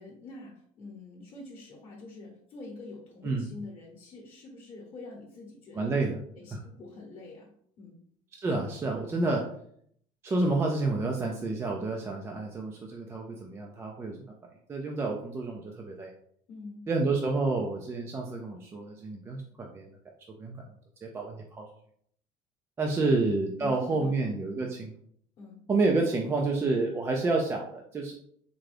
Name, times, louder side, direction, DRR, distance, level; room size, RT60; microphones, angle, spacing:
voice 1, 0.0-8.0 16.5-16.9 22.9-23.2 23.6-24.3 25.4-25.6, left 3 dB, 30° left, -4 dB, 0.9 m, -45 dB
voice 2, 5.7-6.2 6.5-6.6 8.3-9.5 10.2-14.3 14.7-16.1 16.9-19.9 20.4-20.7 21.0-21.7 22.8-24.9 25.7-28.1, right 3 dB, 15° right, 0 dB, 0.3 m, -29 dB
3.7 x 2.2 x 3.2 m, 0.65 s
cardioid pair, 155°, 16 cm